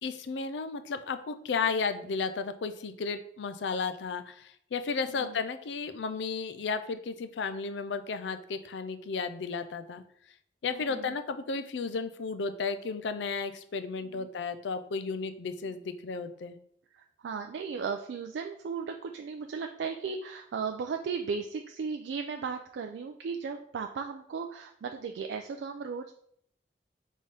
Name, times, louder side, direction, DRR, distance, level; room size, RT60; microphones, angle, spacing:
voice 1, 0.0-10.0 10.6-16.6, left 4 dB, 90° left, 10 dB, 0.4 m, -33 dB
voice 2, 10.7-11.2 14.0-14.3 15.7-15.8 16.9-26.1, right 5 dB, 85° right, 5 dB, 0.3 m, -36 dB
4.0 x 3.6 x 3.3 m, 0.68 s
head